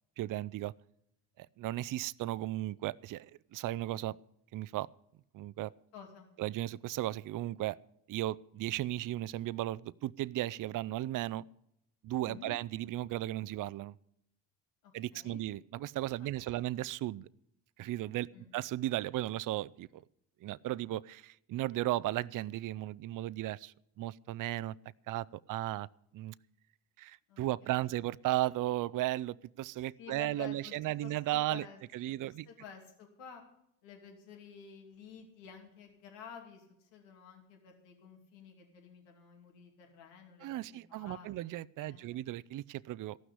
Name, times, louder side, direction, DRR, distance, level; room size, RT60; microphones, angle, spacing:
voice 1, 0.2-0.7 1.4-4.2 4.5-4.9 5.3-5.7 6.4-7.8 8.1-11.4 12.0-13.9 14.9-17.3 17.8-20.0 20.4-24.7 25.1-25.9 26.1-26.3 27.0-31.7 31.9-32.5 40.4-43.2, right 15 dB, 50° right, 19 dB, 0.5 m, -35 dB
voice 2, 5.9-6.3 12.3-12.5 14.8-15.4 16.2-16.3 16.6-16.7 18.3-18.5 27.3-28.0 30.0-31.8 32.1-33.4 33.8-41.3 41.8-42.2, left 7 dB, 80° left, 2 dB, 2.6 m, -52 dB
14.5 x 6.2 x 9.6 m, 0.75 s
supercardioid pair, 65°, 43 cm